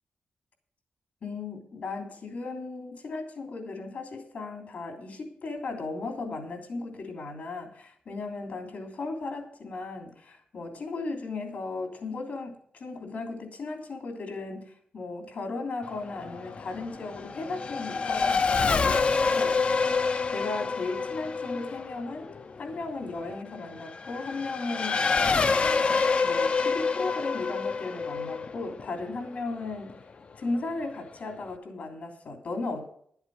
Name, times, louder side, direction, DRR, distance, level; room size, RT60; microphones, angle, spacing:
voice 1, 1.2-19.6 20.0-22.3 22.6-25.2 25.5-29.9 30.3-32.8, left 3 dB, 60° left, 3 dB, 3.2 m, -36 dB
Race car auto racing / Accelerating revving vroom, 15.8-29.9, left 4 dB, 40° left, 0.5 m, -27 dB
11.5 x 8.0 x 6.6 m, 0.62 s
wide cardioid pair, 160°, 3 cm